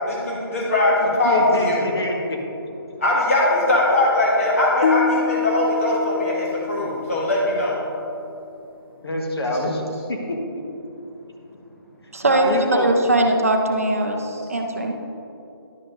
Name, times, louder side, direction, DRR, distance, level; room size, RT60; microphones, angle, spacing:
voice 1, 0.1-1.8 3.0-7.8 9.5-9.6, left 1 dB, 35° left, -5 dB, 1.8 m, -20 dB
voice 2, 1.2-2.4 9.0-9.8 10.1-10.4 12.2-12.9, left 1 dB, 80° left, 0 dB, 1.6 m, -25 dB
sound 1, 4.8-8.0, left 6 dB, 65° left, 0.4 m, -26 dB
voice 3, 12.1-14.9, right 1 dB, 35° right, 3 dB, 0.5 m, -20 dB
11.0 x 5.3 x 3.8 m, 2.8 s
hypercardioid pair, 180°, 13 cm